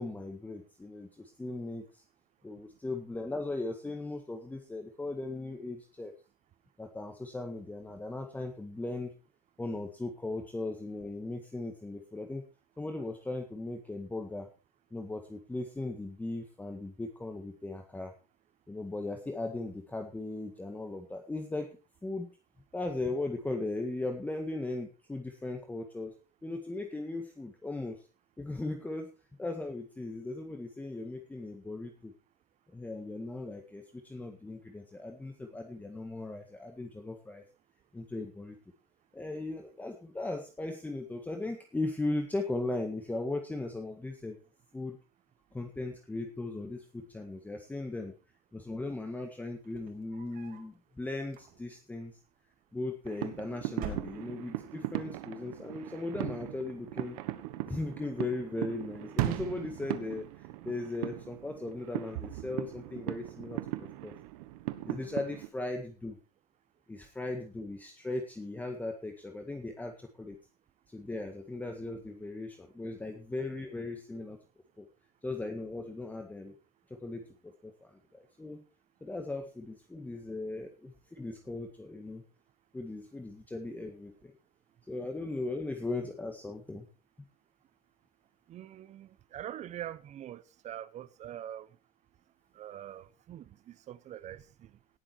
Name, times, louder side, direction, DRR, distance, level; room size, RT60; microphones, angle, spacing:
voice 1, 0.0-2.0 2.4-6.1 6.8-9.1 9.6-12.4 12.8-14.5 14.9-18.1 18.7-22.3 22.7-26.2 26.4-28.1 28.4-29.1 29.4-32.1 32.7-37.4 37.9-38.6 39.1-44.4 44.7-45.0 45.5-48.1 48.5-52.2 52.7-57.2 57.7-64.1 64.8-66.2 66.9-70.4 70.9-74.4 74.8-74.9 75.2-76.5 76.9-78.6 79.0-82.2 82.7-84.3 84.9-86.9 87.2-87.3, left 2 dB, 10° left, 1.7 m, -38 dB
sound 1, 49.6-50.7 51.2-51.9 52.9-53.4 53.7-54.6, right 5 dB, 55° right, 5.3 m, -46 dB
sound 2, 53.1-65.5, right 16 dB, 80° right, 1.4 m, -38 dB
voice 2, 88.5-91.7 92.5-94.7, right 11 dB, 40° right, 1.0 m, -44 dB
18.0 x 7.8 x 4.6 m
supercardioid pair, 120°, 18 cm